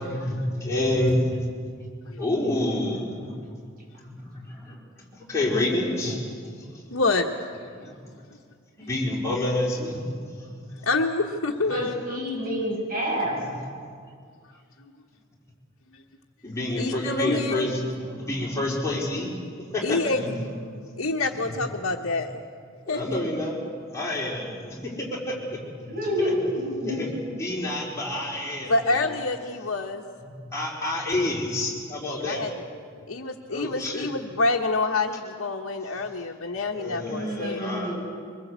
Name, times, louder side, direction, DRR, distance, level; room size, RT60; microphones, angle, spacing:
voice 1, 0.1-1.4 2.2-3.6 4.0-4.8 5.1-6.2 7.8-7.9 8.8-10.7 16.4-20.3 21.5-21.6 22.9-23.6 23.9-26.3 26.8-27.1 27.4-28.8 30.2-32.5 33.5-34.1 36.7-38.0, left 1 dB, 15° left, -5 dB, 4.8 m, -28 dB
voice 2, 6.9-7.3 10.8-12.2 14.8-14.9 16.8-17.7 19.8-20.2 21.0-22.4 22.9-23.2 28.7-30.0 32.2-32.5 33.1-37.7, left 3 dB, 85° left, -2 dB, 1.3 m, -27 dB
voice 3, 11.7-13.4 25.9-27.3 37.1-38.0, equal, 45° right, -2 dB, 7.3 m, -29 dB
23.5 x 21.0 x 8.2 m, 2.2 s
head